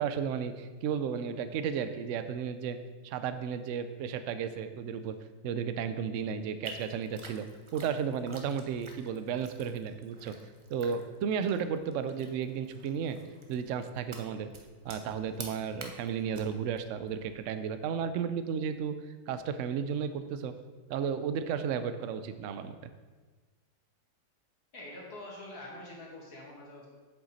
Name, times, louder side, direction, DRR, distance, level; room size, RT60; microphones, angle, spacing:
voice 1, 0.0-2.8 3.0-5.2 5.4-7.5 7.7-10.4 10.7-13.2 13.5-14.5 14.8-18.9 19.3-20.5 20.9-22.8, right 7 dB, 75° right, 10 dB, 0.7 m, -33 dB
sound 1, 6.6-17.4, right 3 dB, 50° right, 0.3 m, -50 dB
voice 2, 24.7-26.9, left 1 dB, 60° left, -3 dB, 2.3 m, -45 dB
7.7 x 7.1 x 4.1 m, 1.3 s
omnidirectional pair, 1.8 m